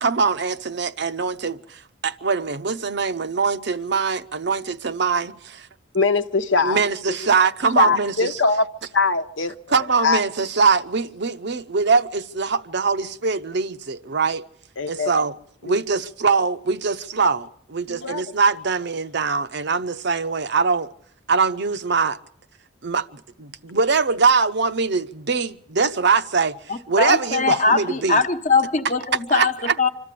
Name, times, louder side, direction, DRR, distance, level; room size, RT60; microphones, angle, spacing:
voice 1, 0.0-5.7 6.6-8.3 9.7-14.5 14.9-15.3 15.6-20.9 21.3-22.2 22.8-28.2 29.3-29.9, right 5 dB, 60° right, 0.7 m, -22 dB
voice 2, 5.9-6.8 7.1-7.3 7.8-8.7 8.9-10.2 14.8-15.1 15.6-15.8 17.9-18.2, left 4 dB, 75° left, 1.0 m, -22 dB
voice 3, 26.7-29.9, left 4 dB, 40° left, 1.1 m, -21 dB
26.0 x 13.0 x 8.4 m
head